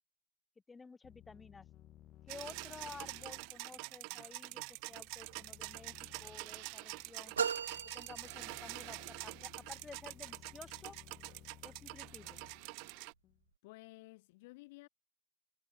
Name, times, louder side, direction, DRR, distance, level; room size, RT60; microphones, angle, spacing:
voice 1, 0.7-1.6 2.3-7.3 7.8-11.0 11.6-12.4, left 4 dB, 10° left, 5.7 m, -53 dB
sound 1, 1.0-13.5, left 13 dB, 30° left, 3.0 m, -60 dB
sound 2, 2.3-13.1, right 37 dB, 45° right, 0.9 m, -46 dB
sound 3, 7.4-9.0, right 7 dB, 70° right, 1.4 m, -38 dB
voice 2, 13.6-14.9, left 22 dB, 50° left, 2.3 m, -54 dB
figure-of-eight pair, 90°, 0 cm